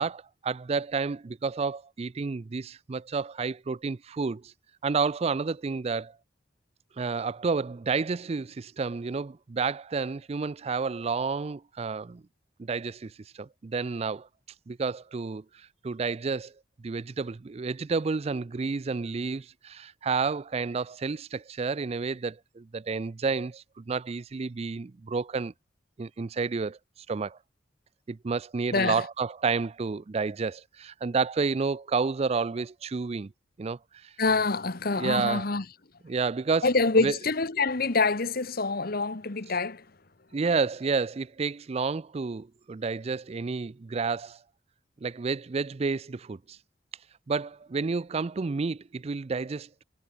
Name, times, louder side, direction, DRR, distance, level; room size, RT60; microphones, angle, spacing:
voice 1, 0.0-4.5 4.8-6.2 7.0-12.2 12.6-14.3 14.7-16.5 16.8-25.5 26.0-26.8 27.1-27.4 28.1-33.3 33.6-34.1 34.9-35.4 36.0-36.7 37.0-37.2 40.3-44.4 45.0-46.6 47.3-49.7, right 4 dB, 35° right, 0.4 m, -30 dB
voice 2, 28.7-29.0 34.2-35.6 36.6-39.8, left 3 dB, 55° left, 1.3 m, -26 dB
head